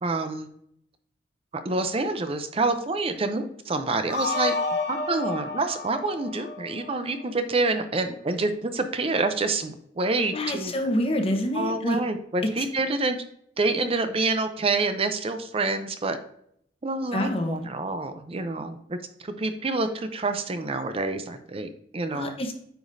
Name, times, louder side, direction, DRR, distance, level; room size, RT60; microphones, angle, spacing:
voice 1, 0.0-0.5 1.6-4.5 4.9-10.7 11.6-13.2 13.6-16.2 16.8-22.3, right 3 dB, 35° right, 8 dB, 0.5 m, -27 dB
sound 1, 4.1-7.2, left 3 dB, 65° left, 1.4 m, -30 dB
voice 2, 10.3-12.0 12.4-12.7 17.1-17.7 22.1-22.5, left 1 dB, 35° left, 5 dB, 1.0 m, -27 dB
9.0 x 5.0 x 2.6 m, 0.69 s
head